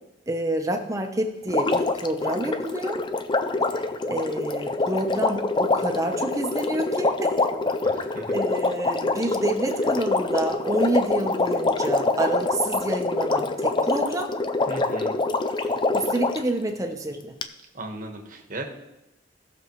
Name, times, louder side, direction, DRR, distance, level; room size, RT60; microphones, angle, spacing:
voice 1, 0.3-3.0 3.7-7.3 8.3-14.3 15.6-17.3, right 1 dB, 15° right, 4 dB, 0.9 m, -28 dB
Water, 1.5-16.5 17.4-17.5, left 3 dB, 25° left, 0.4 m, -25 dB
voice 2, 7.8-8.4 14.7-15.2 17.7-18.6, right 1 dB, 45° right, 3 dB, 1.3 m, -36 dB
17.0 x 6.4 x 3.2 m, 0.94 s
head